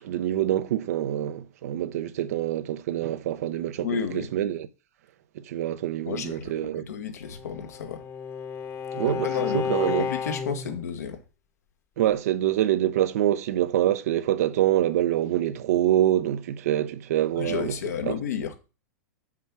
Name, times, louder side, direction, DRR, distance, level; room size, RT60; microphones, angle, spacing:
voice 1, 0.0-3.9 4.1-4.7 5.4-6.9 8.9-10.1 12.0-17.8 18.0-18.1, right 12 dB, 70° right, 0.7 m, -25 dB
voice 2, 3.8-4.3 6.1-8.0 9.0-11.2 17.4-18.6, left 7 dB, 80° left, 1.3 m, -32 dB
Bowed string instrument, 7.2-10.8, left 6 dB, 30° left, 1.0 m, -32 dB
6.0 x 4.4 x 6.0 m
hypercardioid pair, 115°, 9 cm